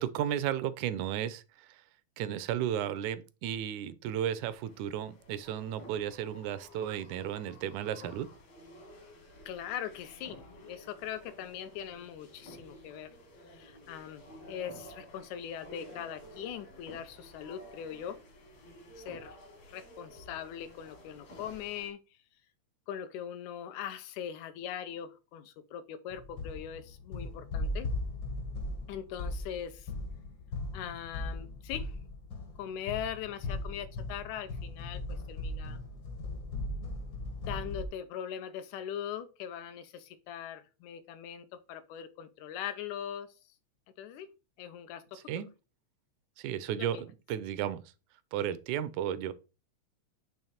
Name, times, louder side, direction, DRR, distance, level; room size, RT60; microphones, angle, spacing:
voice 1, 0.0-1.4 2.2-8.3 45.3-45.5 46.4-47.8 48.3-49.3, right 10 dB, 85° right, 2.0 m, -34 dB
sound 1, 4.3-21.9, equal, 75° left, 3.4 m, -52 dB
voice 2, 9.5-13.1 13.5-18.2 19.0-19.4 19.7-22.0 22.9-27.9 28.9-29.9 30.7-32.0 32.6-35.8 37.5-43.3 44.0-44.3 44.6-45.2 46.8-47.0, left 9 dB, 90° left, 2.1 m, -41 dB
sound 2, 26.1-37.9, left 2 dB, 60° left, 1.2 m, -38 dB
7.0 x 3.2 x 4.2 m
omnidirectional pair, 3.3 m